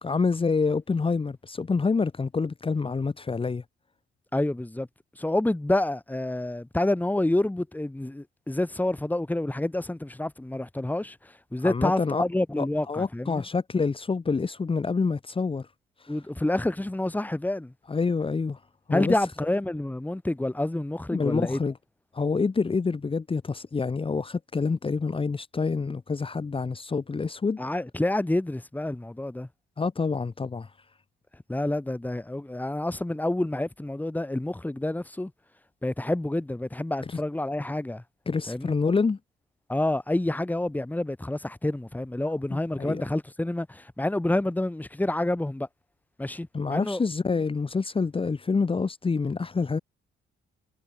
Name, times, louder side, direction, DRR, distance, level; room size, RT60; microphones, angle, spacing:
voice 1, 0.0-3.6 11.6-12.2 12.6-15.7 16.0-16.1 17.9-18.6 18.9-19.1 21.1-21.7 22.1-27.6 29.8-30.7 37.1-37.2 38.3-39.2 42.5-43.0 46.5-49.8, left 4 dB, 25° left, 1.6 m, -27 dB
voice 2, 4.3-4.9 5.2-13.4 16.1-17.7 18.9-21.6 27.6-29.5 31.5-35.3 35.8-38.0 38.5-38.7 39.7-45.7 46.2-47.0, left 1 dB, 10° left, 2.1 m, -28 dB
cardioid pair, 90°, 20 cm